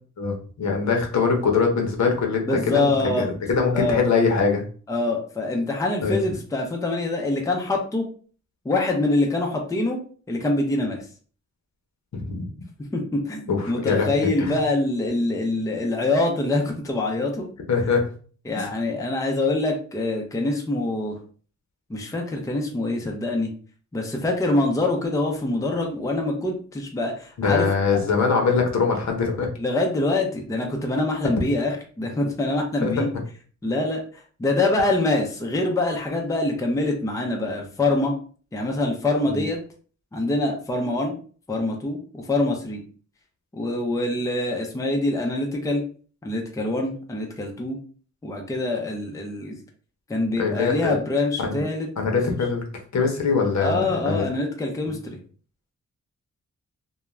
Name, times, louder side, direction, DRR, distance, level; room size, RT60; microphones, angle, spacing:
voice 1, 0.2-4.6 6.0-6.2 12.1-12.4 13.5-14.6 17.7-18.1 18.6-18.7 27.4-29.5 32.8-33.0 39.3-39.4 50.4-51.0 51.4-51.6 52.0-52.6 52.9-54.3 54.9-55.0, left 5 dB, 65° left, 2 dB, 0.8 m, -23 dB
voice 2, 2.5-3.3 3.7-4.0 4.9-8.0 8.6-10.0 10.3-11.1 12.9-17.5 18.5-21.1 21.9-23.5 23.9-27.7 27.9-28.0 29.6-33.1 33.6-34.0 34.4-38.1 38.5-39.6 40.1-41.1 41.5-42.8 43.5-45.8 46.2-47.8 48.2-49.6 50.1-51.9 53.6-55.2, left 2 dB, 10° left, 1 dB, 0.5 m, -25 dB
2.3 x 2.2 x 3.1 m, 0.42 s
wide cardioid pair, 105°, 30 cm